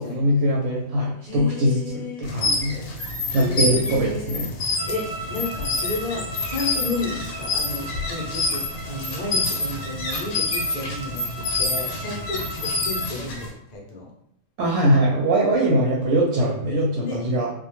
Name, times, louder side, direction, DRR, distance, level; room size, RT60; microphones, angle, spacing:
voice 1, 0.0-2.8 3.3-4.5 14.6-17.5, right 1 dB, 70° right, -3 dB, 0.8 m, -22 dB
voice 2, 1.2-2.3 2.8-3.0 3.3-14.1 17.0-17.2, left 3 dB, 55° left, -2 dB, 0.5 m, -33 dB
sound 1, 2.2-13.5, left 2 dB, 85° left, 1.0 m, -27 dB
sound 2, 4.7-13.2, right 2 dB, 5° right, 0.9 m, -37 dB
2.2 x 2.1 x 2.9 m, 0.74 s
omnidirectional pair, 1.4 m